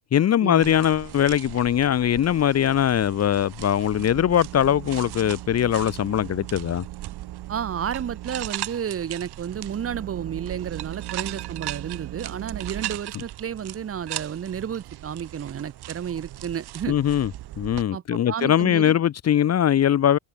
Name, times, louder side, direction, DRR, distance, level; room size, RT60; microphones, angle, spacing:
voice 1, 0.1-6.8 16.9-17.3 17.6-20.2, left 10 dB, 35° left, 0.8 m, -21 dB
sound 1, 0.6-17.8, right 14 dB, 60° right, 1.6 m, -38 dB
sound 2, 4.0-8.8 9.4-13.0, right 16 dB, 90° right, 2.4 m, -39 dB
voice 2, 7.5-17.0 17.9-18.9, right 8 dB, 30° right, 1.2 m, -32 dB
cardioid pair, 180°, 45 cm